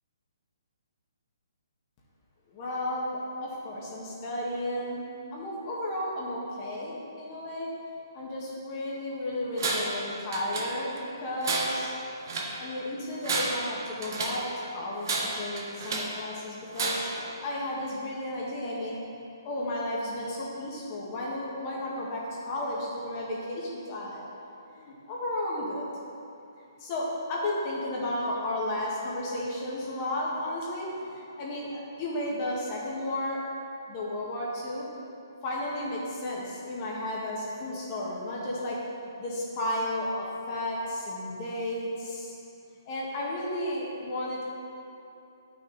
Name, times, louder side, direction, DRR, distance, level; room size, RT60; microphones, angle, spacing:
voice 1, 2.5-7.7 8.1-11.9 12.6-19.0 19.4-24.4 24.7-25.8 26.8-33.4 33.9-34.8 35.4-38.8 39.2-42.3 42.8-44.4, left 1 dB, 35° left, -5 dB, 1.7 m, -33 dB
Tools, 9.6-10.0 10.3-11.0 11.4-12.6 13.1-14.5 15.0-16.2 16.7-17.2, right 3 dB, 60° right, 1.3 m, -31 dB
10.0 x 6.2 x 4.1 m, 2.8 s
hypercardioid pair, 145°, 2 cm